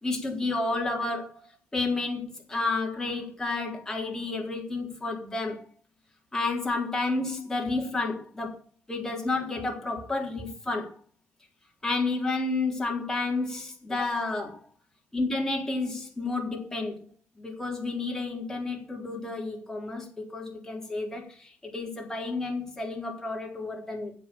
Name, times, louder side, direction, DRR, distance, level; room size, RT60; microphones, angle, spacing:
voice 1, 0.0-5.7 6.3-8.6 8.9-11.0 11.8-14.6 15.1-17.0 17.4-24.1, left 3 dB, 10° left, 4.0 m, -31 dB
10.5 x 7.6 x 9.1 m
cardioid pair, 150°, 5 cm